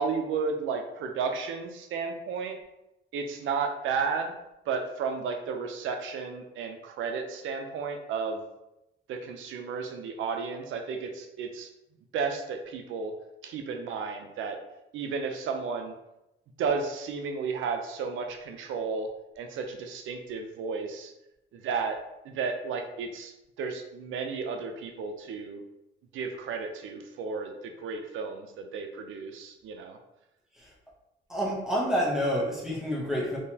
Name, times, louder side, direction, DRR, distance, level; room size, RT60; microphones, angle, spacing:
voice 1, 0.0-2.6 3.1-4.3 4.7-8.4 9.1-11.7 12.1-13.1 13.4-14.6 14.9-15.9 16.6-19.1 19.4-21.1 21.5-22.0 22.2-23.3 23.6-25.6 26.1-30.0, right 5 dB, 90° right, 5 dB, 0.6 m, -33 dB
voice 2, 31.3-33.4, equal, ahead, -4 dB, 0.8 m, -28 dB
3.8 x 2.9 x 2.8 m, 0.89 s
cardioid pair, 155°, 20 cm